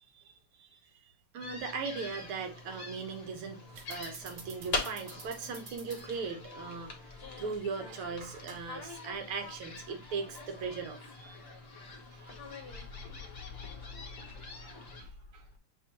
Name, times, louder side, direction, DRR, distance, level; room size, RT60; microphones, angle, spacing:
voice 1, 0.1-0.8 1.3-6.9 7.4-11.4 12.1-12.3 14.6-14.7 15.0-15.6, right 5 dB, 90° right, 1.9 m, -39 dB
sound 1, 1.4-15.0, left 3 dB, 40° left, 0.9 m, -44 dB
sound 2, 3.7-13.7, right 4 dB, 55° right, 1.1 m, -53 dB
voice 2, 12.6-15.6, left 5 dB, 75° left, 0.6 m, -49 dB
6.5 x 2.8 x 2.8 m
omnidirectional pair, 2.3 m